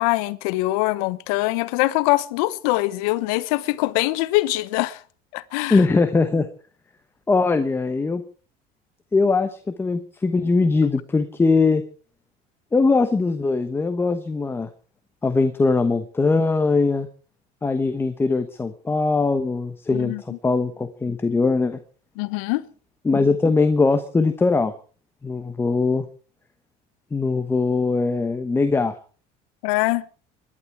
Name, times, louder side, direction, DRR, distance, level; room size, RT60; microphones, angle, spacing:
voice 1, 0.0-5.0 5.3-5.8 19.9-20.4 22.2-22.6 29.6-30.1, left 19 dB, 80° left, 1.1 m, -23 dB
voice 2, 5.7-6.5 7.3-8.2 9.1-11.8 12.7-14.7 15.2-17.1 17.6-20.1 20.4-21.8 23.0-24.7 25.2-26.0 27.1-28.9, left 3 dB, 10° left, 1.0 m, -21 dB
25.0 x 11.5 x 4.7 m
cardioid pair, 140°, 19 cm